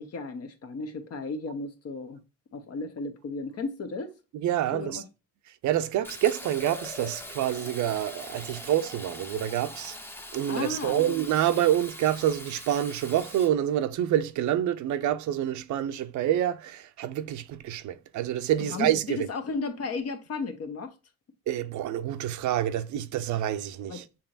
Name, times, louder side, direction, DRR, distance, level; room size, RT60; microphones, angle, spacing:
voice 1, 0.0-2.2 2.5-4.1 4.7-5.0 10.5-11.1 18.6-20.9 23.9-24.0, left 3 dB, 55° left, 0.9 m, -34 dB
voice 2, 4.3-5.0 5.6-10.0 10.3-19.3 21.5-24.0, right 11 dB, 70° right, 0.5 m, -27 dB
Fill (with liquid), 6.0-13.5, left 1 dB, 5° left, 0.6 m, -42 dB
7.0 x 3.0 x 2.4 m
cardioid pair, 90°, 30 cm